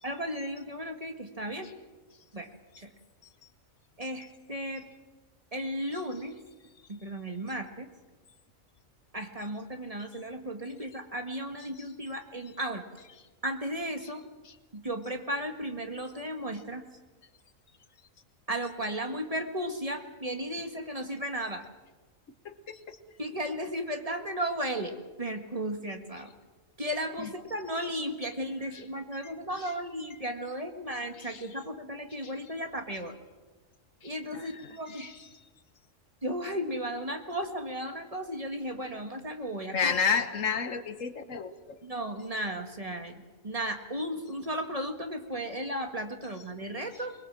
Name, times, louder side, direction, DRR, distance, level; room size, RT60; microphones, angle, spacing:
voice 1, 0.0-1.7 2.3-2.9 4.0-4.9 5.5-6.4 6.9-7.9 9.1-12.8 13.4-14.3 14.7-16.9 18.5-21.6 23.2-26.3 26.8-33.1 34.0-35.1 36.2-39.9 41.8-47.2, equal, 25° right, 5 dB, 1.8 m, -35 dB
voice 2, 22.4-23.0 27.2-27.3 28.7-28.8 29.6-29.7 31.2-31.4 32.2-32.3 34.0-35.3 39.7-41.8, left 6 dB, 70° left, 10 dB, 1.6 m, -32 dB
23.5 x 21.0 x 7.5 m, 1.3 s
omnidirectional pair, 1.4 m